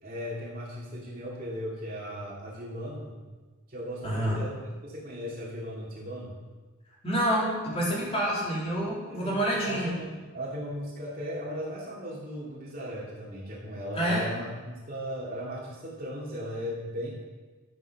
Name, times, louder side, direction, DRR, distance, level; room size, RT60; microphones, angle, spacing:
voice 1, 0.0-3.1 3.7-6.3 9.1-17.1, equal, 45° right, -5 dB, 2.6 m, -37 dB
voice 2, 4.0-4.4 7.0-9.9 13.9-14.3, right 1 dB, 30° left, -5 dB, 3.5 m, -28 dB
12.0 x 7.7 x 6.0 m, 1.3 s
head